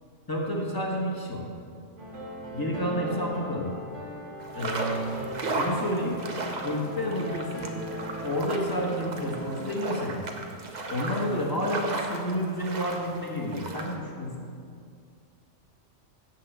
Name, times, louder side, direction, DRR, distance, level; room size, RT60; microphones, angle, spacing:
voice 1, 0.3-1.5 2.5-3.7 4.5-5.2 5.6-6.2 6.6-7.6 8.2-10.2 10.9-14.5, equal, 20° left, -1 dB, 1.3 m, -30 dB
sound 1, 2.0-9.6, right 1 dB, 75° right, 2.2 m, -39 dB
sound 2, 4.4-13.9, right 2 dB, 40° right, 0.9 m, -35 dB
7.7 x 5.9 x 7.4 m, 2.4 s
omnidirectional pair, 1.3 m